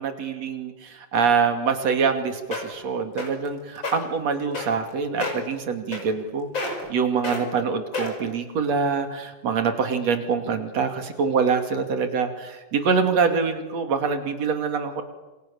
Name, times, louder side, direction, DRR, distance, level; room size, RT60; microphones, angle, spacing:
voice 1, 0.0-15.0, right 5 dB, 45° right, 7 dB, 3.4 m, -25 dB
sound 1, 2.2-2.3 2.5-2.8 3.2-3.5 3.8-3.9 4.5-4.9 5.2-5.5 5.9-6.3 6.5-6.9 7.2-7.4 7.9-8.3 8.9-9.0, left 2 dB, 30° left, 6.1 m, -29 dB
28.5 x 26.5 x 7.1 m, 1.1 s
omnidirectional pair, 4.5 m